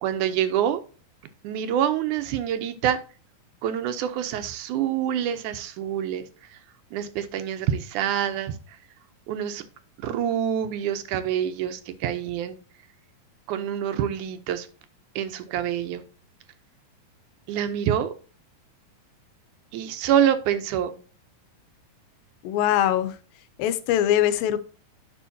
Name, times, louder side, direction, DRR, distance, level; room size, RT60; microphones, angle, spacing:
voice 1, 0.0-0.8 1.4-3.0 3.6-6.3 6.9-8.5 9.3-9.6 10.0-12.6 13.5-14.7 15.2-16.0 17.5-18.1 19.7-21.0, right 10 dB, 75° right, 10 dB, 2.0 m, -26 dB
voice 2, 22.4-23.2 23.6-24.6, left 11 dB, 85° left, 12 dB, 2.4 m, -22 dB
10.0 x 5.4 x 2.7 m, 0.37 s
omnidirectional pair, 4.0 m